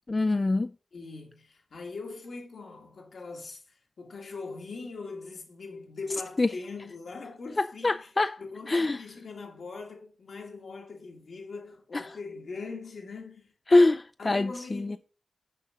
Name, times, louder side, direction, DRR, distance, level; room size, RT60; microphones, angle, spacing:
voice 1, 0.1-0.7 6.4-6.5 7.6-8.4 8.7-9.0 11.9-12.2 13.7-15.0, left 2 dB, 40° left, 0.3 m, -24 dB
voice 2, 0.9-8.1 8.4-13.5 14.2-15.0, left 4 dB, 80° left, 1.7 m, -41 dB
6.5 x 5.3 x 4.8 m
wide cardioid pair, 70°, 0 cm